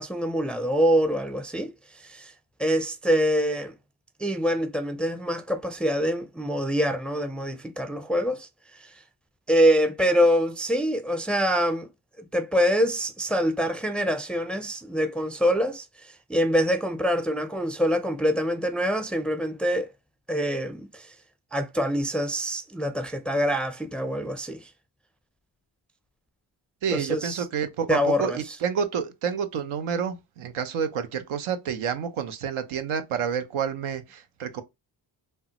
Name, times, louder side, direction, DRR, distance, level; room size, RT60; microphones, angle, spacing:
voice 1, 0.0-1.7 2.0-2.3 2.6-3.7 4.2-8.5 8.8-8.9 9.5-11.9 12.2-19.9 20.3-21.1 21.5-24.7 26.9-27.4 27.9-28.6, equal, ahead, 0.4 m, -25 dB
voice 2, 26.8-34.6, right 7 dB, 75° right, 0.7 m, -29 dB
3.4 x 2.1 x 2.7 m
supercardioid pair, 55°, 49 cm